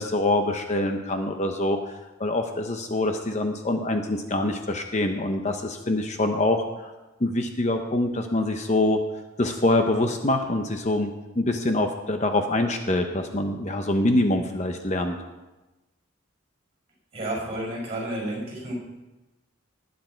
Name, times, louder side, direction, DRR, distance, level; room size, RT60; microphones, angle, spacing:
voice 1, 0.0-6.9 7.2-9.0 9.4-15.2, left 2 dB, 35° left, 5 dB, 0.8 m, -25 dB
voice 2, 17.1-18.7, right 1 dB, 30° right, -2 dB, 5.6 m, -31 dB
19.5 x 9.5 x 4.5 m, 1.1 s
head